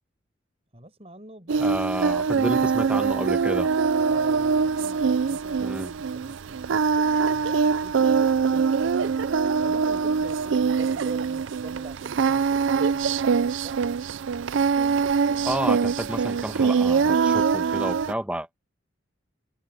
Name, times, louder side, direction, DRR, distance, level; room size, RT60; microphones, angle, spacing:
voice 1, 0.7-1.8 2.1-3.0 4.1-6.7 7.2-9.3 9.6-13.8, right 1 dB, 30° right, 6.5 m, -45 dB
Singing, 1.5-18.1, right 5 dB, 70° right, 0.4 m, -23 dB
voice 2, 1.6-3.7 5.6-5.9 15.4-18.5, right 1 dB, 5° right, 1.2 m, -30 dB
head